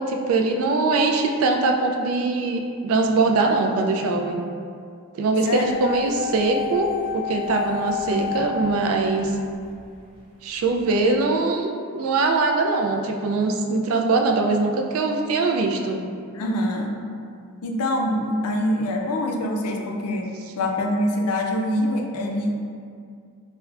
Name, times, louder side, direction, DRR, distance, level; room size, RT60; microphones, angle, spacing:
voice 1, 0.0-4.4 5.1-9.3 10.4-16.0, right 3 dB, 70° right, 3 dB, 0.3 m, -22 dB
sound 1, 5.6-9.7 10.0-10.1, left 7 dB, 5° left, 0.9 m, -30 dB
voice 2, 16.3-16.9 17.6-22.5, left 1 dB, 90° left, 2 dB, 0.4 m, -24 dB
4.5 x 2.1 x 2.4 m, 2.3 s
head